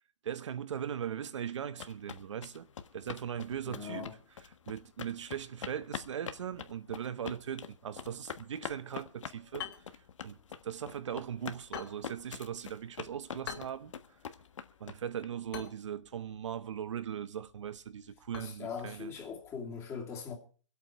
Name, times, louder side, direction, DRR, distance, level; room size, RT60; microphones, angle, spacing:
voice 1, 0.2-2.7 2.9-4.1 4.7-13.9 14.8-19.1, right 9 dB, 65° right, 1.0 m, -39 dB
sound 1, 1.5-15.3, left 7 dB, 70° left, 1.5 m, -44 dB
voice 2, 3.7-4.1 18.4-20.4, left 6 dB, 15° left, 2.4 m, -41 dB
sound 2, 9.5-19.6, left 9 dB, 40° left, 3.4 m, -50 dB
25.0 x 8.5 x 4.6 m
hypercardioid pair, 155°, 17 cm